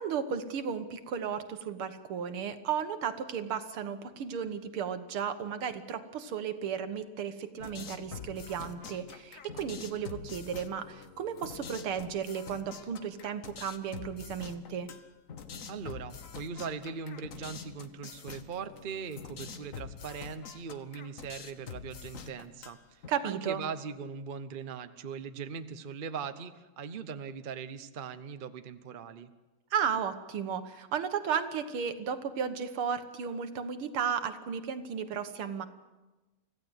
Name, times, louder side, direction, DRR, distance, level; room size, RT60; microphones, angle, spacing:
voice 1, 0.0-14.9 23.1-23.6 29.7-35.7, right 7 dB, 80° right, 9 dB, 2.2 m, -34 dB
sound 1, 7.6-23.1, left 6 dB, 45° left, 1.2 m, -46 dB
voice 2, 15.7-22.8 23.2-29.3, right 6 dB, 50° right, 10 dB, 0.6 m, -40 dB
25.0 x 15.5 x 8.0 m, 1.1 s
omnidirectional pair, 2.4 m